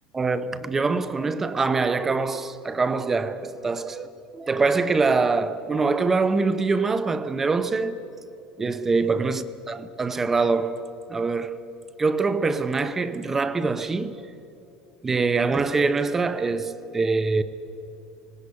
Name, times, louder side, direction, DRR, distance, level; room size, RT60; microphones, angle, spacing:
voice 1, 0.1-4.1 4.3-8.0 8.6-11.6 12.0-14.2 15.0-17.4, right 4 dB, 15° right, 0.7 m, -24 dB
19.5 x 17.5 x 9.7 m
cardioid pair, 175°, 2 cm